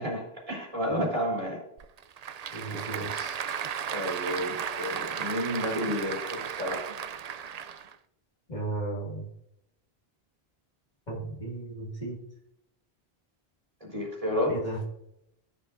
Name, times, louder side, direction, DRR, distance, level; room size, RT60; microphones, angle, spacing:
voice 1, 0.0-1.6 2.4-2.6 2.9-3.1 3.9-6.8 13.8-14.6, equal, 35° right, -3 dB, 3.4 m, -31 dB
Applause / Crowd, 1.8-8.0, right 8 dB, 55° right, 0.5 m, -35 dB
voice 2, 2.5-3.4 8.5-9.3 11.1-12.2 14.5-14.8, right 2 dB, 45° left, -3 dB, 2.3 m, -35 dB
14.0 x 5.7 x 2.6 m, 0.79 s
omnidirectional pair, 1.1 m